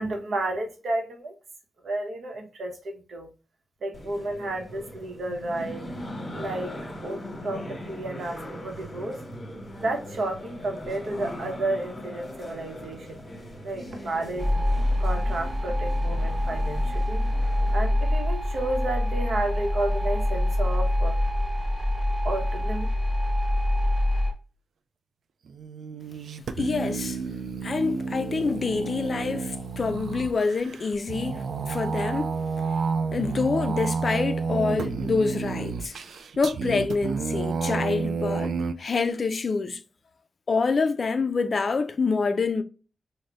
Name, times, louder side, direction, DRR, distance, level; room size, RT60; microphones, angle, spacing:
voice 1, 0.0-1.3 1.8-3.3 3.8-5.9 6.3-6.7 7.0-9.2 9.8-13.2 13.6-14.5 15.0-17.3 17.7-21.2 22.2-22.9, right 2 dB, 70° right, 0.8 m, -31 dB
sound 1, 3.9-17.8, equal, 30° left, 1.0 m, -40 dB
sound 2, 14.4-24.3, left 1 dB, 25° right, 1.1 m, -25 dB
sound 3, 25.5-38.7, right 5 dB, 90° right, 0.3 m, -30 dB
voice 2, 26.6-27.2 27.6-32.3 33.1-35.9 36.4-39.8 40.5-42.6, left 4 dB, 45° left, 0.3 m, -26 dB
3.8 x 2.1 x 3.3 m
wide cardioid pair, 135°, 0 cm